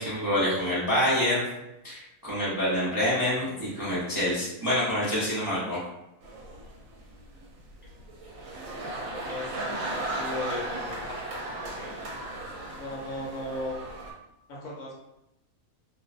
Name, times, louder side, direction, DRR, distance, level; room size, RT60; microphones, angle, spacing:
voice 1, 0.0-1.4 1.8-5.8, left 1 dB, 35° right, -10 dB, 0.3 m, -27 dB
sound 1, 6.2-14.1, right 2 dB, 75° right, 0.9 m, -36 dB
voice 2, 8.8-12.0 12.7-13.9 14.5-14.9, left 1 dB, 70° left, -3 dB, 1.0 m, -38 dB
2.5 x 2.0 x 2.4 m, 0.89 s
omnidirectional pair, 1.5 m